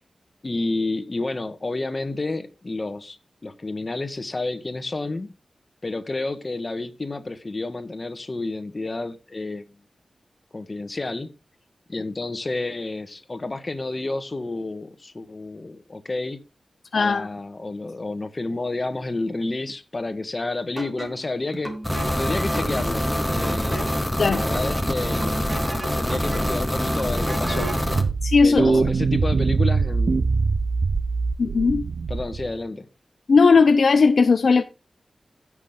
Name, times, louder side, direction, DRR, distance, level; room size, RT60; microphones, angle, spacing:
voice 1, 0.4-3.2 3.4-5.3 5.8-9.7 10.5-11.3 11.9-16.4 16.9-21.7 22.2-24.0 24.3-25.5 26.0-27.7 28.4-30.3 32.1-32.9, left 2 dB, 35° left, 1.5 m, -30 dB
voice 2, 16.9-17.3 24.2-24.4 28.2-28.7 31.4-31.8 33.3-34.6, left 4 dB, 70° left, 0.6 m, -17 dB
Taiwan Canal, 20.8-27.9, right 2 dB, 30° right, 3.2 m, -36 dB
sound 1, 21.8-28.0, equal, 5° left, 1.9 m, -25 dB
sound 2, 27.9-32.5, right 4 dB, 65° right, 0.6 m, -22 dB
16.5 x 6.2 x 3.8 m
wide cardioid pair, 90°, 0 cm